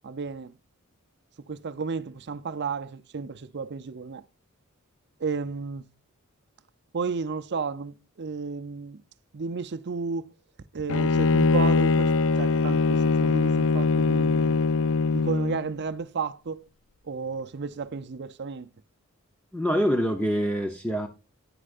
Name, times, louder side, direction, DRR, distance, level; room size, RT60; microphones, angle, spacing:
voice 1, 0.0-0.5 1.5-4.2 5.2-5.8 6.9-9.0 9.3-10.3 10.7-14.6 15.1-16.6 17.0-18.7, right 5 dB, 50° right, 0.6 m, -33 dB
Bowed string instrument, 10.9-15.6, left 4 dB, 60° left, 0.5 m, -22 dB
voice 2, 19.5-21.1, equal, 5° left, 0.8 m, -25 dB
9.9 x 9.9 x 2.5 m
head